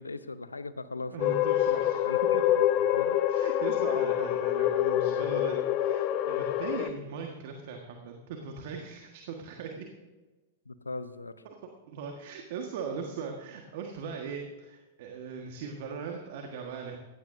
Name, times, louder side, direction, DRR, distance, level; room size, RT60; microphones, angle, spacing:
voice 1, 0.0-1.5 2.0-3.2 10.7-11.4, left 3 dB, 90° left, 14 dB, 0.7 m, -39 dB
voice 2, 1.1-2.4 3.3-9.9 11.4-11.6 11.9-17.0, right 5 dB, 55° right, 3 dB, 1.6 m, -39 dB
sound 1, 1.2-6.9, left 11 dB, 45° left, 0.8 m, -26 dB
16.0 x 16.0 x 2.7 m, 1.2 s
figure-of-eight pair, 100°, 0 cm